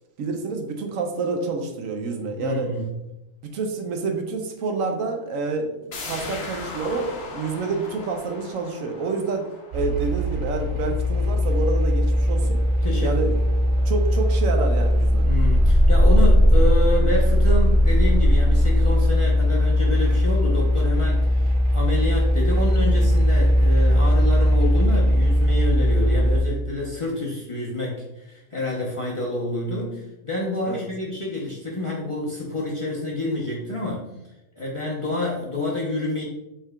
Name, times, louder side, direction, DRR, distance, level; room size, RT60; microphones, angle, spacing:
voice 1, 0.2-2.7 3.5-5.8 6.0-9.5 9.7-12.6 13.0-13.3 13.8-15.3 30.6-30.8, right 4 dB, 80° right, 4 dB, 1.0 m, -28 dB
voice 2, 2.4-2.8 12.8-13.4 15.2-34.1 34.6-36.2, left 2 dB, 30° left, -5 dB, 0.7 m, -28 dB
sound 1, 5.9-11.4 11.7-11.8, left 3 dB, 60° left, 1.0 m, -38 dB
sound 2, 9.7-26.4, equal, 60° right, 1.4 m, -19 dB
5.5 x 3.6 x 2.3 m, 0.93 s
omnidirectional pair, 1.4 m